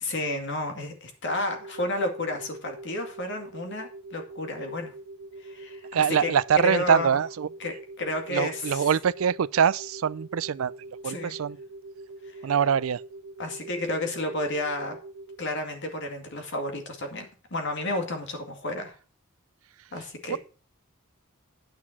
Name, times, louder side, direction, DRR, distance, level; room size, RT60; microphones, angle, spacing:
voice 1, 0.0-4.9 5.4-5.8 6.1-6.3 6.6-7.1 7.6-8.8 11.0-11.4 12.3-12.4 13.4-15.0 15.4-18.9 19.9-20.4, left 2 dB, 60° left, 2.3 m, -31 dB
sound 1, 1.3-15.4, right 2 dB, 55° right, 1.2 m, -44 dB
voice 2, 5.9-7.5 8.3-10.7 11.0-11.6 12.4-13.0 20.3-20.4, right 7 dB, 80° right, 0.4 m, -24 dB
9.5 x 6.1 x 6.0 m
head